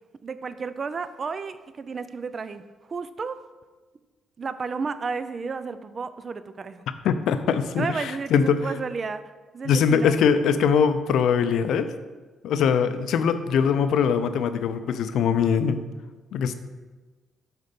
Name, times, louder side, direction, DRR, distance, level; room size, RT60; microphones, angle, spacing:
voice 1, 0.2-2.6 2.9-3.4 4.4-6.8 7.8-10.2, right 4 dB, 40° right, 13 dB, 0.4 m, -32 dB
voice 2, 7.0-8.7 9.6-11.9 12.4-15.8 16.3-16.5, left 7 dB, 75° left, 10 dB, 0.5 m, -22 dB
6.6 x 4.3 x 5.2 m, 1.3 s
cardioid pair, 90°, 0 cm